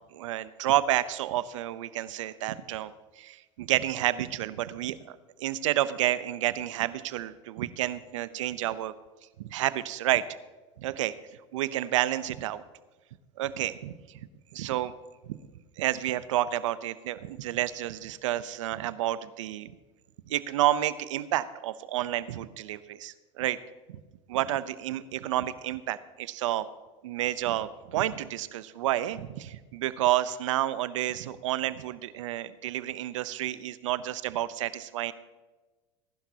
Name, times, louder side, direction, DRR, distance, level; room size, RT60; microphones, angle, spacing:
voice 1, 0.1-8.9 9.4-10.2 10.8-11.1 11.5-12.6 13.4-14.2 14.5-14.9 15.3-15.4 15.8-19.7 20.3-23.6 24.3-26.7 27.0-35.1, right 13 dB, 85° right, 15 dB, 0.7 m, -30 dB
19.5 x 11.5 x 2.8 m, 1.2 s
hypercardioid pair, 100°, 16 cm